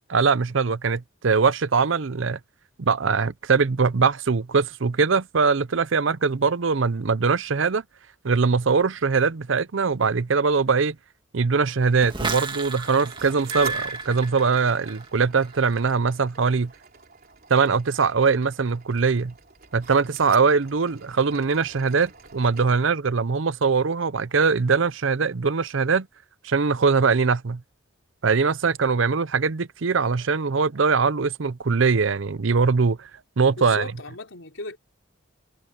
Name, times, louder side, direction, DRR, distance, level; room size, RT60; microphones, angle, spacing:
voice 1, 0.1-2.4 2.8-7.8 8.2-11.0 11.3-16.7 17.5-19.3 19.7-26.1 26.4-27.6 28.2-33.1 33.4-33.9, right 5 dB, 65° right, 0.6 m, -22 dB
sound 1, 11.8-22.7, right 5 dB, 50° right, 3.7 m, -45 dB
sound 2, 12.0-15.1 15.4-15.8, right 3 dB, 25° right, 2.0 m, -32 dB
voice 2, 33.6-34.8, left 2 dB, 70° left, 3.7 m, -36 dB
head